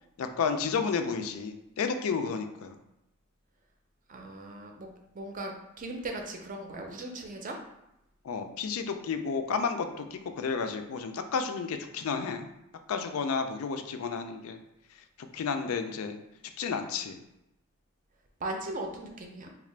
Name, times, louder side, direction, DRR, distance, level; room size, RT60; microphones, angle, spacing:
voice 1, 0.2-2.8 8.2-12.5 12.9-14.6 15.2-16.2 16.6-17.2, left 5 dB, 80° left, 7 dB, 0.4 m, -31 dB
voice 2, 4.1-4.9 5.1-7.6 18.4-19.5, right 2 dB, 40° right, 2 dB, 0.5 m, -38 dB
3.5 x 2.4 x 3.2 m, 0.86 s
head